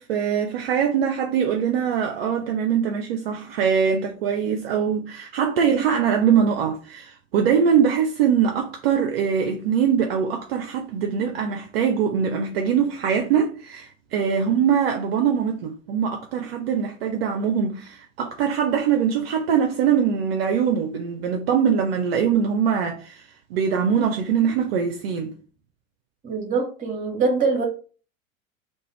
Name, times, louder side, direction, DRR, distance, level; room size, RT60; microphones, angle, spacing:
voice 1, 0.0-25.3, right 7 dB, 50° right, 0.4 m, -22 dB
voice 2, 26.2-27.6, right 4 dB, 20° right, 0.8 m, -23 dB
2.4 x 2.2 x 3.0 m
figure-of-eight pair, 85°, 40 cm